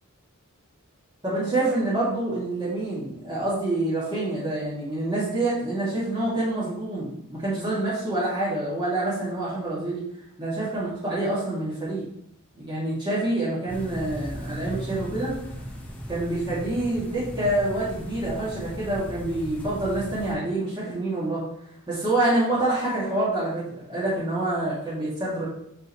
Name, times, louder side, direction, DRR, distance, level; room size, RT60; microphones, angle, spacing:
voice 1, 1.2-10.0 10.4-12.0 12.5-15.3 16.1-21.4 21.9-25.4, right 2 dB, 20° right, -9 dB, 2.2 m, -27 dB
sound 1, 13.7-20.3, equal, 5° left, 0.9 m, -37 dB
8.5 x 4.5 x 3.1 m, 0.74 s
head